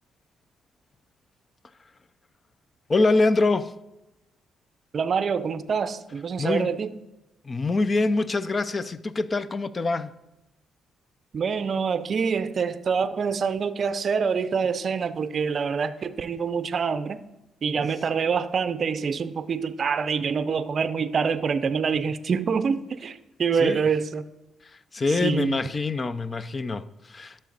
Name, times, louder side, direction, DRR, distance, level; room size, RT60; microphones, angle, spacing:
voice 1, 2.9-3.7 6.4-6.7 7.4-10.1 23.6-23.9 24.9-27.4, left 3 dB, 30° left, 0.5 m, -24 dB
voice 2, 4.9-6.9 11.3-17.2 17.6-24.3 25.1-25.6, right 6 dB, 50° right, 0.5 m, -26 dB
11.5 x 6.7 x 4.0 m
cardioid pair, 90°, 0 cm